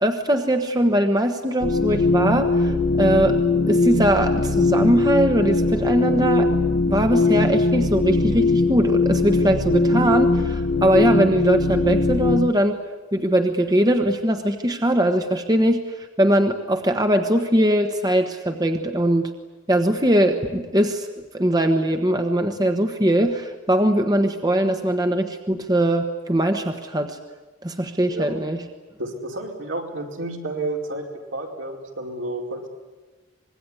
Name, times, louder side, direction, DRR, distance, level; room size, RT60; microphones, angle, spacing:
voice 1, 0.0-3.4 3.7-6.5 6.9-12.8 13.1-19.3 19.7-21.1 21.3-27.2 27.6-28.6, right 1 dB, 20° right, 5 dB, 1.3 m, -21 dB
sound 1, 1.6-12.5, left 3 dB, 55° left, 0.9 m, -20 dB
voice 2, 29.0-32.7, right 2 dB, 75° right, 0 dB, 4.7 m, -31 dB
25.5 x 21.0 x 9.9 m, 1.2 s
head